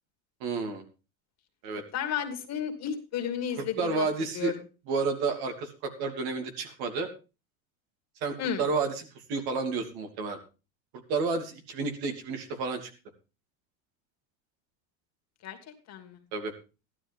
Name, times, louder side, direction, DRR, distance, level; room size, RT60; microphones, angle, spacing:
voice 1, 0.4-0.8 1.6-1.8 3.8-4.5 4.9-7.1 8.2-10.4 11.1-12.9 16.3-16.5, right 4 dB, 65° right, 5 dB, 2.9 m, -31 dB
voice 2, 1.9-4.1 4.3-4.5 8.4-8.6 15.4-15.6 15.9-16.2, left 8 dB, 40° left, 5 dB, 2.3 m, -32 dB
14.5 x 12.0 x 3.5 m, 0.31 s
cardioid pair, 140°, 41 cm